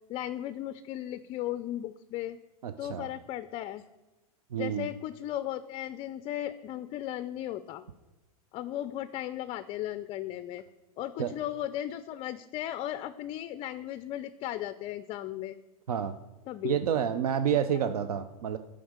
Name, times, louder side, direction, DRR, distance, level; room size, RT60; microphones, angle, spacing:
voice 1, 0.1-2.4 2.8-3.8 4.5-7.8 8.5-10.6 11.0-15.6 16.5-16.8, left 12 dB, 30° left, 14 dB, 0.4 m, -36 dB
voice 2, 2.6-3.1 4.5-4.9 11.2-11.3 15.9-16.1 16.6-18.6, right 8 dB, 80° right, 10 dB, 0.6 m, -29 dB
7.8 x 5.0 x 6.5 m, 1.1 s
hypercardioid pair, 115°, 19 cm